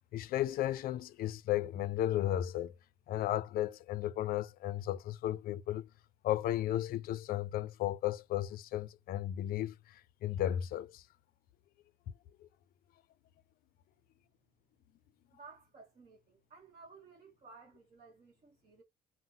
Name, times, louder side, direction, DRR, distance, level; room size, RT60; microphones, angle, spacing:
voice 1, 0.1-2.7 3.1-5.9 6.2-11.0 12.4-12.5, left 12 dB, 60° left, 0.4 m, -34 dB
voice 2, 15.3-18.8, right 4 dB, 40° right, 0.9 m, -56 dB
2.7 x 2.0 x 3.6 m
cardioid pair, 110°, 17 cm